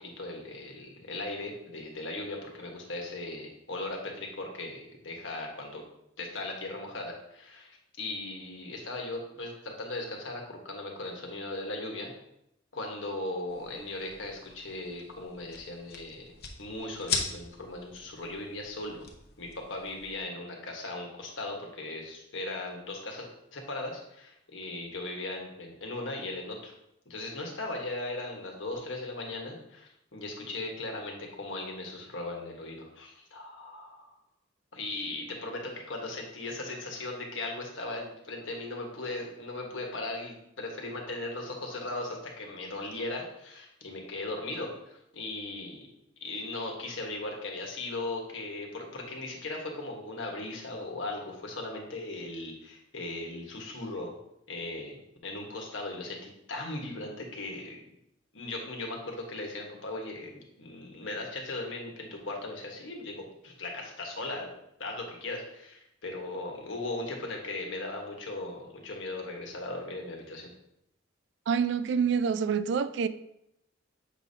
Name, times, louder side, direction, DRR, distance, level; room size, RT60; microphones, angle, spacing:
voice 1, 0.0-5.8 6.2-12.1 12.7-16.3 16.6-19.0 19.4-26.7 27.0-34.1 34.7-45.9 46.2-54.2 54.5-55.0 55.2-57.8 58.3-64.5 64.8-70.5, left 2 dB, 80° left, 1 dB, 1.3 m, -38 dB
sound 1, 13.5-20.2, left 5 dB, 55° left, 0.9 m, -40 dB
voice 2, 71.5-73.1, right 6 dB, 60° right, 13 dB, 0.3 m, -27 dB
7.3 x 5.1 x 2.8 m, 0.79 s
head